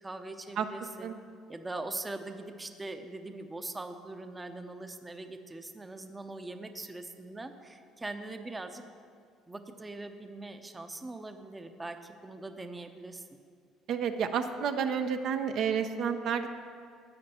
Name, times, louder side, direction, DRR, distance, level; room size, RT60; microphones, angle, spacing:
voice 1, 0.0-1.2 1.5-8.8 9.5-13.2, right 2 dB, 15° right, 7 dB, 0.7 m, -41 dB
voice 2, 13.9-16.5, right 7 dB, 60° right, 7 dB, 0.6 m, -30 dB
13.0 x 8.8 x 4.3 m, 2.2 s
cardioid pair, 110°, 0 cm